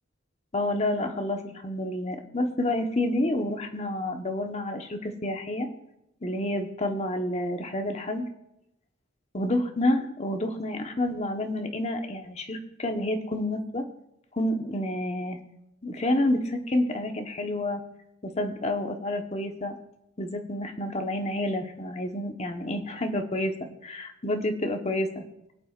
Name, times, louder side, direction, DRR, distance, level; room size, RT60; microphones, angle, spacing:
voice 1, 0.5-5.7 6.2-8.2 9.3-13.8 14.3-15.4 15.8-17.8 18.2-19.7 20.2-23.5 23.8-25.2, left 1 dB, 35° left, 4 dB, 1.2 m, -29 dB
24.0 x 8.3 x 2.5 m, 0.89 s
head